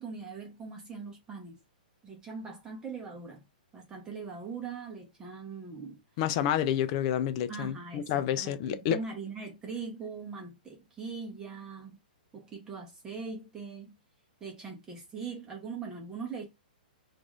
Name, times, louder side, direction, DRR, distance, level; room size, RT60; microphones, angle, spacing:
voice 1, 0.0-1.6 2.0-3.4 3.7-6.0 7.5-12.0 12.3-13.9 14.4-16.5, right 5 dB, 15° right, 0.9 m, -41 dB
voice 2, 6.2-9.0, left 10 dB, 40° left, 0.5 m, -29 dB
4.6 x 2.6 x 2.4 m
hypercardioid pair, 145°, 5 cm